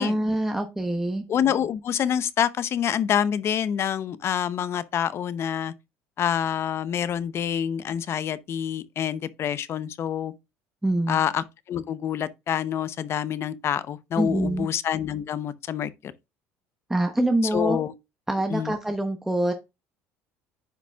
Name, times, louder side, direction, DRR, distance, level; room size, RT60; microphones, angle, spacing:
voice 1, 0.0-1.2 10.8-11.2 14.2-14.7 16.9-17.8 18.3-19.5, right 1 dB, 5° right, 1.0 m, -25 dB
voice 2, 1.3-5.7 6.2-10.3 11.1-16.1 17.5-17.9 18.5-18.7, left 9 dB, 45° left, 0.7 m, -27 dB
10.0 x 5.8 x 2.3 m
supercardioid pair, 95°, 6 cm